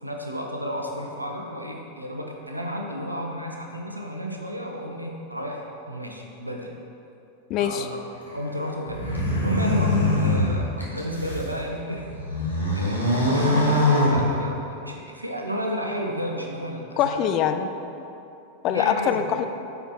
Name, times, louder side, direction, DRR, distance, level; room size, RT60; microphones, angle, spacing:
voice 1, 0.0-6.7 7.6-9.0 9.4-12.1 12.7-17.2 18.7-19.2, equal, 85° right, 1 dB, 0.8 m, -32 dB
voice 2, 7.5-7.9 17.0-17.7 18.6-19.5, left 9 dB, 35° left, 8 dB, 0.4 m, -23 dB
sound 1, 8.9-11.5 12.0-14.8, left 1 dB, 90° left, 1.2 m, -23 dB
9.0 x 4.6 x 3.8 m, 2.7 s
figure-of-eight pair, 90°, 0 cm